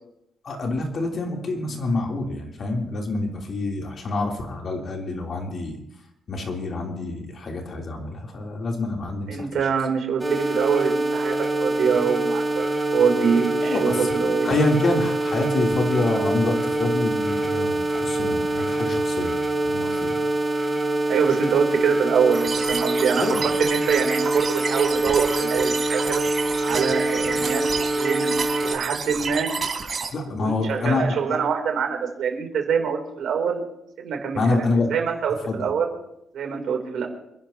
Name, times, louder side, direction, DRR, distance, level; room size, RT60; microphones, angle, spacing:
voice 1, 0.4-5.8 6.3-9.5 13.6-14.1 14.4-19.4 19.6-20.1 23.2-23.4 30.1-31.4 34.4-34.9 35.4-35.7, left 2 dB, 50° left, 1 dB, 3.3 m, -26 dB
voice 2, 9.3-11.3 11.6-12.7 12.9-14.6 21.1-26.2 26.6-27.7 28.0-28.3 28.6-29.5 30.4-33.6 34.0-35.9 36.3-37.1, right 6 dB, 70° right, 3 dB, 3.2 m, -24 dB
sound 1, 10.2-28.7, right 2 dB, 10° right, 3.3 m, -25 dB
sound 2, 22.3-30.1, right 5 dB, 40° right, 3.5 m, -30 dB
27.5 x 11.0 x 2.9 m, 0.80 s
cardioid pair, 90°, 0 cm